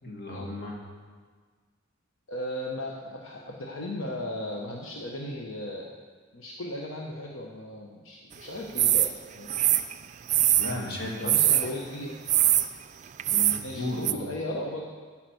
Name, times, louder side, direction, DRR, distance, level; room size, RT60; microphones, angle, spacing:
voice 1, 0.0-0.8 10.6-11.5 13.3-14.2, left 2 dB, 50° left, -2 dB, 2.3 m, -34 dB
voice 2, 2.3-5.9 6.3-9.1 9.3-9.5 11.2-12.1 13.6-14.9, left 1 dB, 75° left, -1 dB, 1.1 m, -36 dB
sound 1, 8.8-9.1 9.5-10.8 11.3-11.7 12.3-12.7 13.2-13.6 14.0-14.1, right 13 dB, 35° right, 0.4 m, -22 dB
12.5 x 5.8 x 7.8 m, 1.5 s
head